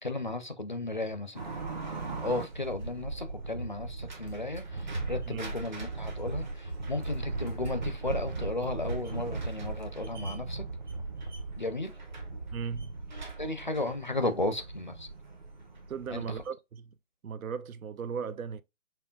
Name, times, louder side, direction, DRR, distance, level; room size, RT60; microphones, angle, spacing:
voice 1, 0.0-1.4 2.2-10.6 11.6-12.0 13.4-15.1 16.1-16.2, left 2 dB, 40° left, 0.4 m, -34 dB
sound 1, 1.3-16.5, right 3 dB, 35° right, 0.8 m, -38 dB
voice 2, 12.5-12.9 15.9-16.9 17.2-18.6, right 6 dB, 90° right, 0.6 m, -37 dB
5.5 x 2.2 x 2.2 m
figure-of-eight pair, 160°, 40 cm